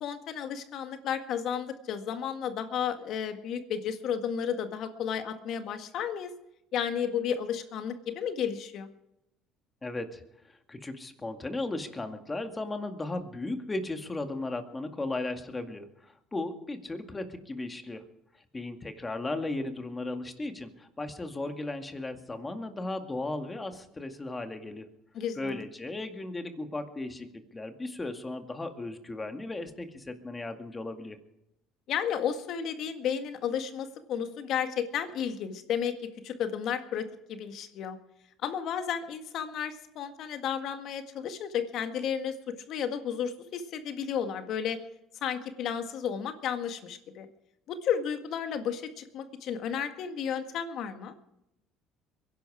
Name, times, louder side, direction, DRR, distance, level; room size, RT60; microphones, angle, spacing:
voice 1, 0.0-6.3 6.7-8.9 25.1-25.6 31.9-35.9 36.2-38.0 38.4-42.4 42.7-44.8 45.2-47.3 47.7-51.1, left 8 dB, 60° left, 7 dB, 1.7 m, -32 dB
voice 2, 9.8-18.0 18.5-24.9 25.4-31.2, left 2 dB, 20° left, 6 dB, 2.1 m, -36 dB
22.5 x 11.0 x 4.9 m, 0.85 s
supercardioid pair, 85°, 0 cm